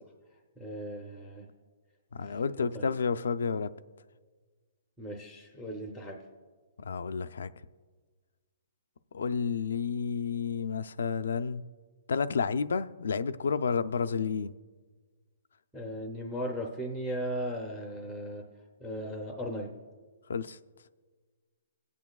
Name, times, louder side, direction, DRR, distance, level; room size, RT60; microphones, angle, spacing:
voice 1, 0.6-1.5 2.6-2.9 5.0-6.2 15.7-18.4 18.8-19.7, equal, 5° right, 0.6 m, -37 dB
voice 2, 2.1-3.7 6.8-7.5 9.1-11.6 12.1-14.5 20.3-20.6, left 5 dB, 80° left, 0.4 m, -30 dB
22.5 x 8.3 x 2.3 m
hypercardioid pair, 175°, 0 cm